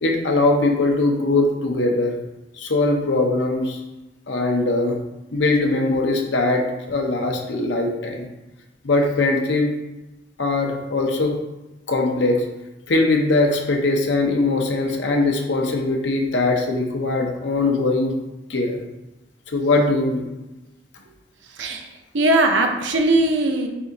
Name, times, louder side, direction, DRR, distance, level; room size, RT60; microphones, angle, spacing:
voice 1, 0.0-2.2 2.6-3.8 4.3-5.0 5.3-8.3 8.8-9.7 10.4-11.4 11.9-12.4 12.9-18.1 18.5-18.8 19.5-20.3, left 2 dB, 70° left, 2 dB, 0.7 m, -21 dB
voice 2, 21.4-23.7, right 2 dB, 75° right, 4 dB, 0.6 m, -20 dB
3.6 x 3.4 x 3.9 m, 1.0 s
head